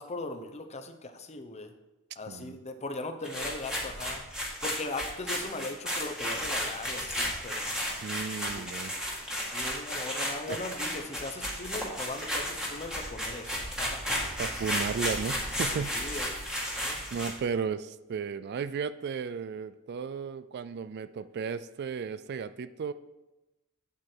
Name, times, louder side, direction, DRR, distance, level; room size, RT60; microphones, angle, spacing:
voice 1, 0.0-1.7 2.2-4.2 4.6-7.7 8.5-8.7 9.5-14.1 15.7-16.3 16.8-17.0, left 2 dB, 30° left, 6 dB, 0.8 m, -39 dB
voice 2, 2.3-2.6 8.0-9.0 10.5-10.6 14.4-15.9 17.1-22.9, right 6 dB, 50° right, 14 dB, 0.3 m, -34 dB
sound 1, 3.2-17.4, equal, 5° right, 1.7 m, -33 dB
8.3 x 7.6 x 4.5 m, 1.0 s
head